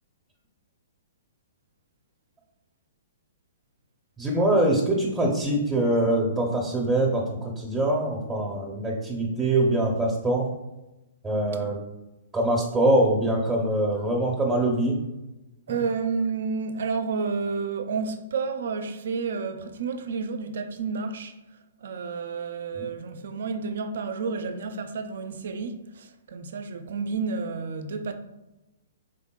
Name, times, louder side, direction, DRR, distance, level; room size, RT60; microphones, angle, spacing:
voice 1, 4.2-10.5 11.2-11.8 12.3-15.0 22.7-22.9, right 1 dB, 10° right, 0.6 m, -23 dB
voice 2, 15.7-21.3 21.8-28.1, right 5 dB, 70° right, 0.4 m, -30 dB
3.9 x 3.5 x 2.2 m
hypercardioid pair, 135°, 0 cm